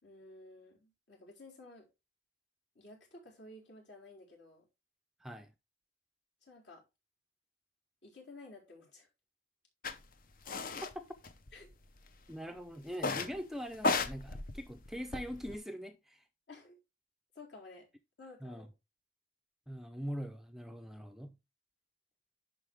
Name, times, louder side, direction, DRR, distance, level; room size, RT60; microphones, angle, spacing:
voice 1, 0.0-1.9 2.7-4.7 6.4-6.8 8.0-9.1 11.5-11.7 16.5-16.8 17.3-17.9 18.2-18.7, left 2 dB, 65° left, 4.1 m, -53 dB
voice 2, 5.2-5.5 10.8-11.2 12.3-16.2 18.4-18.7 19.7-21.4, equal, ahead, 0.5 m, -42 dB
sound 1, 9.8-10.0 10.5-10.9 11.2-12.0 12.9-13.4 13.7-15.6, left 3 dB, 45° left, 0.7 m, -35 dB
10.5 x 4.7 x 3.5 m
head